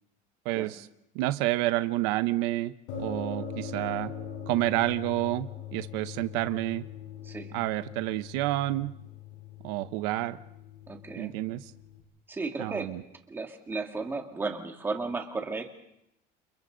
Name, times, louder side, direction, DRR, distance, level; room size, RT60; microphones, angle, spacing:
voice 1, 0.4-0.8 1.1-2.7 3.0-4.1 4.5-6.8 7.5-8.9 9.6-10.4 11.2-11.6 12.6-13.0, right 17 dB, 80° right, 11 dB, 1.0 m, -29 dB
sound 1, 2.9-12.0, left 6 dB, 90° left, 7.1 m, -41 dB
voice 2, 7.2-7.6 10.9-11.4 12.3-12.9 13.3-15.8, right 3 dB, 10° right, 3 dB, 2.0 m, -34 dB
29.5 x 29.5 x 4.0 m, 0.82 s
cardioid pair, 175°, 18 cm